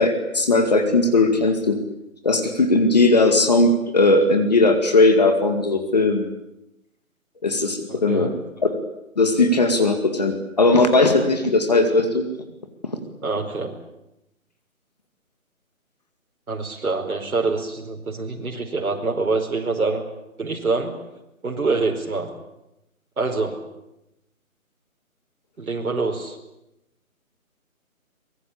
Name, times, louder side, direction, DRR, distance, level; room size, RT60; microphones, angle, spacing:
voice 1, 0.0-1.8 2.2-6.3 7.4-8.3 8.6-8.8 9.2-12.2, left 2 dB, 30° left, 6 dB, 2.1 m, -18 dB
voice 2, 13.2-13.7 16.5-20.0 20.4-21.0 21.4-22.3 23.2-23.6 25.6-26.4, right 3 dB, 80° right, 0 dB, 4.9 m, -25 dB
24.0 x 21.0 x 8.6 m, 0.90 s
hypercardioid pair, 175°, 43 cm